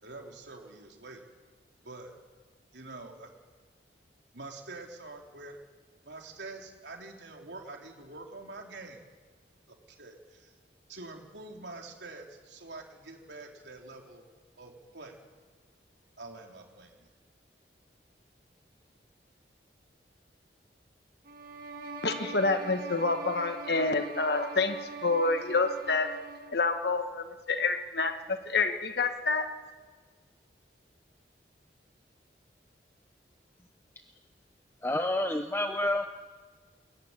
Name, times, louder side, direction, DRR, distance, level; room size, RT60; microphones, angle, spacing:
voice 1, 0.0-1.3 1.8-2.1 2.7-3.3 4.3-5.6 6.1-9.0 9.7-10.5 10.9-14.3 14.6-15.2 16.2-17.1, right 2 dB, 85° right, 3.5 m, -46 dB
sound 1, 21.2-26.6, right 3 dB, 50° right, 1.9 m, -43 dB
voice 2, 22.0-26.2 26.5-29.6, left 3 dB, 70° left, 1.3 m, -28 dB
voice 3, 34.8-36.1, left 1 dB, 15° left, 0.6 m, -28 dB
21.5 x 18.0 x 9.7 m
head